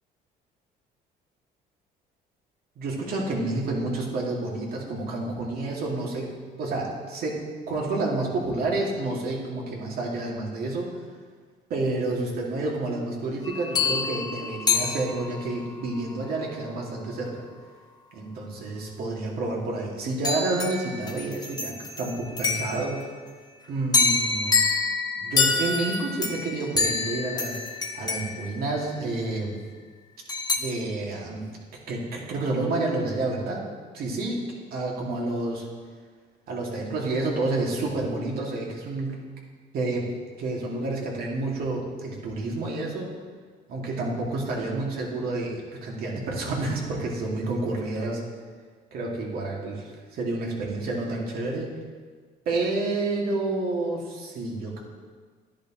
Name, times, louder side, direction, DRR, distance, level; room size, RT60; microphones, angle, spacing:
voice 1, 2.8-6.3 6.6-7.4 7.7-10.9 11.7-17.4 18.1-23.1 23.7-24.6 25.1-27.6 27.9-29.6 30.5-31.4 31.9-33.6 33.9-34.4 34.7-35.7 36.5-39.3 39.7-40.1 40.4-43.1 43.7-48.2 48.9-51.7 52.5-54.8, right 2 dB, 65° right, -2 dB, 2.4 m, -29 dB
sound 1, 13.5-15.7 20.2-23.1 23.9-29.3 30.3-30.6, left 4 dB, 25° left, 1.0 m, -27 dB
11.5 x 10.0 x 3.1 m, 1.6 s
cardioid pair, 110°, 17 cm